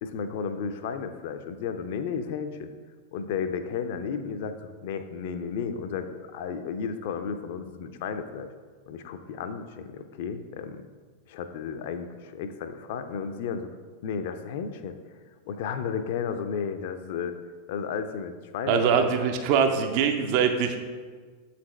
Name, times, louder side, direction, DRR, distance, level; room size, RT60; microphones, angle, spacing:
voice 1, 0.0-2.7 3.1-8.5 8.9-10.8 11.3-13.7 14.0-15.0 15.5-17.3 17.7-19.1, left 6 dB, 50° left, 9 dB, 0.4 m, -33 dB
voice 2, 18.7-20.8, right 6 dB, 45° right, 6 dB, 0.4 m, -23 dB
7.2 x 4.1 x 3.1 m, 1.5 s
figure-of-eight pair, 90°, 0 cm